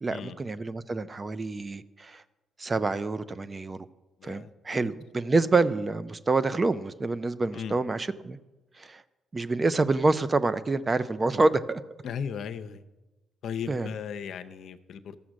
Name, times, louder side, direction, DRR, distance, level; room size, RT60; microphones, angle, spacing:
voice 1, 0.0-2.2 2.6-3.8 4.2-8.4 8.8-9.0 9.3-11.8 13.7-13.9, right 3 dB, 30° right, 14 dB, 0.5 m, -27 dB
voice 2, 4.2-4.9 7.5-7.8 12.0-12.8 13.4-15.2, left 7 dB, 70° left, 10 dB, 0.6 m, -36 dB
13.0 x 7.0 x 6.3 m, 1.1 s
cardioid pair, 90°, 0 cm